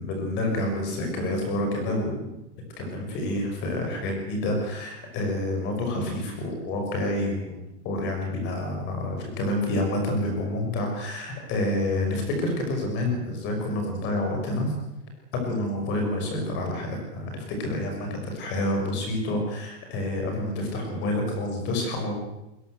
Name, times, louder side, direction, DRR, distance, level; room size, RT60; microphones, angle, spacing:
voice 1, 0.0-2.4 2.8-7.6 7.8-14.7 15.3-22.2, left 1 dB, 20° left, 3 dB, 6.2 m, -28 dB
22.0 x 21.0 x 8.1 m, 0.93 s
hypercardioid pair, 175°, 48 cm